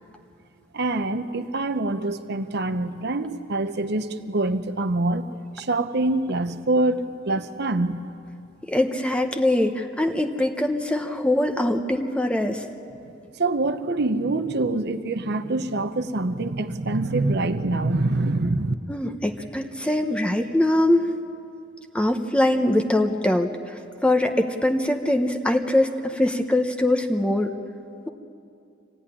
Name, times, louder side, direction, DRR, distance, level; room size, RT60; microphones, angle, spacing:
voice 1, 0.7-5.3 5.6-8.0 13.4-18.7, right 2 dB, 60° right, 9 dB, 0.9 m, -25 dB
voice 2, 8.7-12.6 18.9-21.1 21.9-27.5, left 1 dB, 5° left, 4 dB, 0.9 m, -22 dB
26.0 x 16.5 x 10.0 m, 2.6 s
head